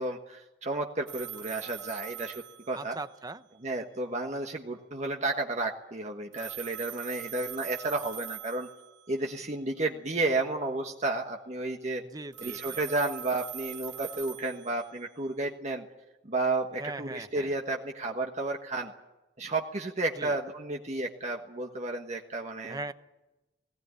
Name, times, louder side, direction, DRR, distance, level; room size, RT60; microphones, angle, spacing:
voice 1, 0.0-3.0 3.6-8.7 9.1-12.0 12.4-15.8 16.2-18.9 19.4-22.8, right 2 dB, 40° right, 2 dB, 1.4 m, -32 dB
sound 1, 1.1-3.4 6.3-9.2 12.3-15.3, right 11 dB, 85° right, 1.4 m, -43 dB
voice 2, 2.7-3.4 12.1-12.8 16.8-17.5 20.2-20.4 22.7-22.9, right 2 dB, 20° right, 12 dB, 0.8 m, -40 dB
18.5 x 18.5 x 9.6 m, 1.0 s
head